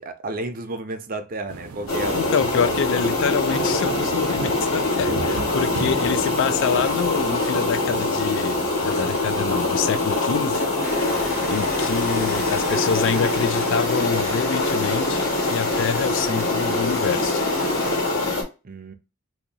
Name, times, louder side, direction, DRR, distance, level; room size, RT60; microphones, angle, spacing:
voice 1, 0.0-3.1 3.6-3.9 18.6-18.9, right 2 dB, 40° right, 0.6 m, -33 dB
sound 1, 1.5-9.8, right 3 dB, 80° right, 0.7 m, -36 dB
sound 2, 1.9-18.4, left 2 dB, 75° left, 1.4 m, -24 dB
voice 2, 2.1-10.6 11.5-17.4, left 6 dB, 60° left, 0.3 m, -26 dB
Rain, 10.8-18.0, left 1 dB, 45° left, 1.1 m, -34 dB
2.8 x 2.7 x 3.9 m
head